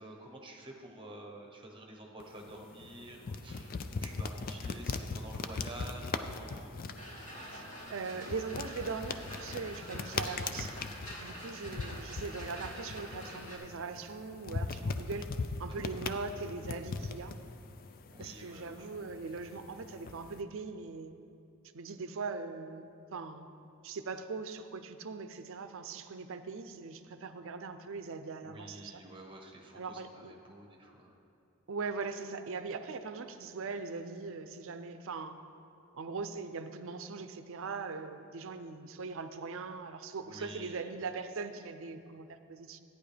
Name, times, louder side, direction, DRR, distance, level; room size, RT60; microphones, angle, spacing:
voice 1, 0.0-6.7 15.7-16.1 18.1-18.8 28.4-31.1 40.2-40.8, right 1 dB, 25° right, 1 dB, 1.1 m, -49 dB
sound 1, 2.2-20.4, left 4 dB, 40° left, 0.4 m, -40 dB
sound 2, 7.0-13.6, equal, 85° left, 2.5 m, -47 dB
voice 2, 7.5-10.8 11.2-15.3 15.6-17.4 18.2-21.1 21.7-23.5 23.8-29.0 29.7-30.3 31.7-35.4 35.9-42.8, right 4 dB, 65° right, 9 dB, 0.5 m, -40 dB
14.5 x 9.6 x 3.3 m, 2.7 s
head